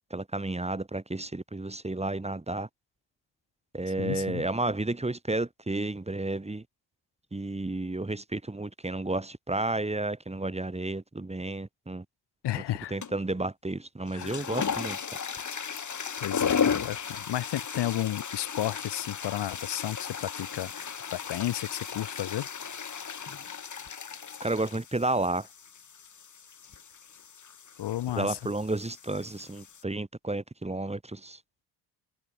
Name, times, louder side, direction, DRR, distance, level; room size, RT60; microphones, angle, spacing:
voice 1, 0.1-2.7 3.7-6.6 7.3-12.0 12.6-12.7 12.9-15.0 24.4-25.5 28.2-31.4, right 2 dB, 15° right, 4.0 m, -31 dB
voice 2, 4.0-4.5 12.4-13.0 14.1-14.5 16.2-22.5 27.8-28.4, left 13 dB, 60° left, 4.3 m, -33 dB
sound 1, 13.0-13.3 14.0-29.8, left 6 dB, 40° left, 6.4 m, -35 dB
hypercardioid pair, 60°, 46 cm